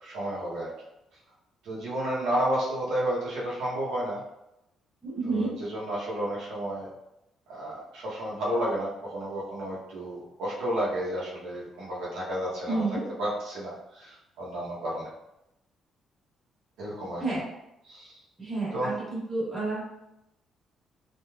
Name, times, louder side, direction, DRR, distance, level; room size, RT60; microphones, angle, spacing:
voice 1, 0.0-0.7 1.6-4.2 5.2-6.9 7.5-12.8 13.2-15.1 16.8-17.2 17.9-18.2 18.7-18.9, right 1 dB, 90° right, -7 dB, 0.8 m, -31 dB
voice 2, 5.0-5.5 12.7-13.0 17.2-17.4 18.4-20.0, right 3 dB, 25° right, -8 dB, 1.3 m, -30 dB
3.1 x 2.3 x 2.3 m, 0.88 s
cardioid pair, 125°, 0 cm